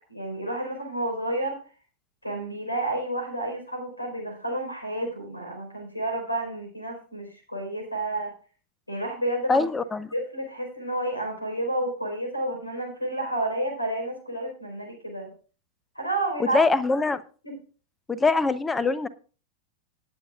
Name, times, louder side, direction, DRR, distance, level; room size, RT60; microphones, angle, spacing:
voice 1, 0.1-1.6 2.2-8.3 8.9-9.7 10.1-15.3 15.9-16.6 17.4-17.5, right 1 dB, 85° left, 4 dB, 4.3 m, -30 dB
voice 2, 9.5-10.1 16.4-17.2 18.1-19.1, left 3 dB, 15° left, 16 dB, 0.8 m, -23 dB
18.5 x 9.1 x 2.4 m, 0.37 s
figure-of-eight pair, 90°, 0 cm